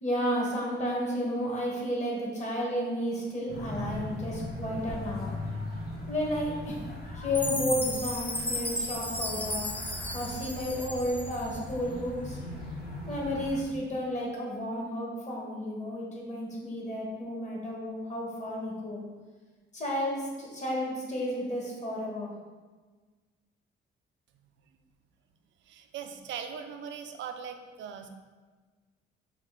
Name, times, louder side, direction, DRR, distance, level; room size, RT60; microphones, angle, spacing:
voice 1, 0.0-5.3 6.1-6.9 7.1-12.4 13.0-19.0 19.7-22.3, equal, 35° left, -3 dB, 1.4 m, -32 dB
sound 1, 3.5-13.6, left 1 dB, 50° left, 1.4 m, -39 dB
Chime, 7.3-11.6, left 1 dB, 10° left, 0.5 m, -34 dB
voice 2, 25.7-28.1, right 7 dB, 70° right, 6 dB, 0.5 m, -40 dB
5.6 x 2.5 x 3.7 m, 1.4 s
cardioid pair, 90°, 20 cm